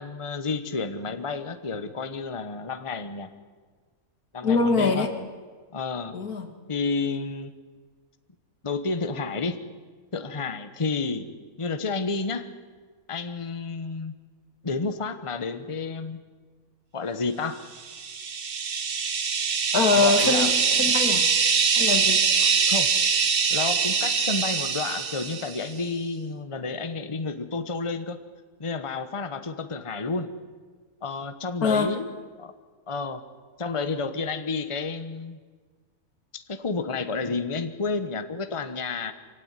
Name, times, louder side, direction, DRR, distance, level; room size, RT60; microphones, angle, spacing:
voice 1, 0.0-3.3 4.3-5.1 5.7-6.1 6.7-7.5 8.6-9.6 10.1-11.3 11.6-12.5 13.1-14.1 14.6-16.2 16.9-17.6 19.3-19.4 19.9-20.5 20.8-20.9 22.4-22.9 23.5-28.2 28.6-30.3 31.0-32.1 32.4-32.5 32.9-33.2 33.6-35.4 36.3-39.1, left 4 dB, 25° left, 10 dB, 1.1 m, -30 dB
voice 2, 4.4-5.1 6.1-6.5 19.7-21.2 21.8-22.2 31.6-31.9, left 4 dB, 85° left, 7 dB, 2.5 m, -23 dB
sound 1, 17.9-25.7, right 5 dB, 45° right, 1.2 m, -23 dB
24.5 x 16.5 x 9.7 m, 1.5 s
omnidirectional pair, 1.5 m